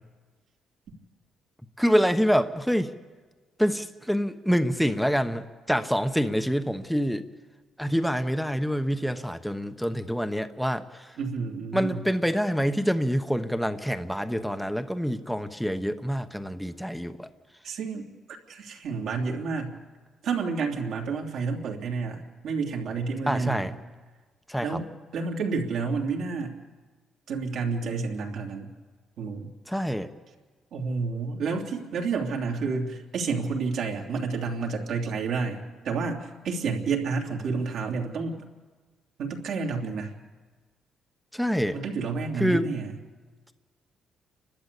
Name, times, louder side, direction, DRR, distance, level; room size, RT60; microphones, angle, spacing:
voice 1, 1.8-2.9 3.6-7.2 7.8-11.1 11.7-17.3 23.3-23.7 24.5-24.8 29.7-30.1 41.3-41.8 42.4-42.7, equal, ahead, 9 dB, 1.0 m, -26 dB
voice 2, 11.2-12.0 17.6-18.1 18.5-19.7 20.2-23.7 24.6-24.9 25.1-26.5 27.3-28.7 29.2-29.5 30.7-38.4 39.2-40.2 41.7-42.9, right 4 dB, 75° right, 1 dB, 3.0 m, -30 dB
30.0 x 12.5 x 8.4 m, 1.4 s
cardioid pair, 90°, 0 cm